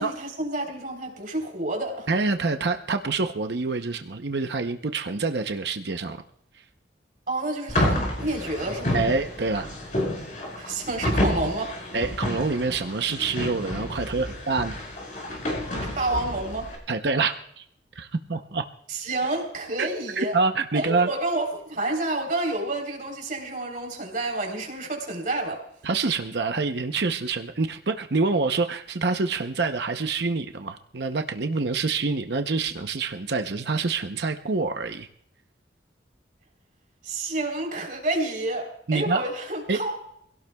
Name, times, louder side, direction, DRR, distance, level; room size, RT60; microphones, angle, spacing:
voice 1, 0.0-2.1 7.3-9.0 10.6-11.7 15.8-16.7 18.9-20.4 20.7-25.6 37.0-40.0, right 2 dB, 50° right, 2 dB, 3.7 m, -29 dB
voice 2, 2.1-6.2 8.9-9.8 11.9-14.8 16.9-17.6 18.0-18.7 19.8-19.9 20.2-21.1 25.8-35.1 38.9-39.2 39.7-39.8, right 4 dB, 70° right, 6 dB, 0.8 m, -26 dB
sound 1, 7.7-16.8, left 1 dB, 45° left, 5.7 m, -29 dB
25.0 x 17.0 x 2.3 m, 0.70 s
head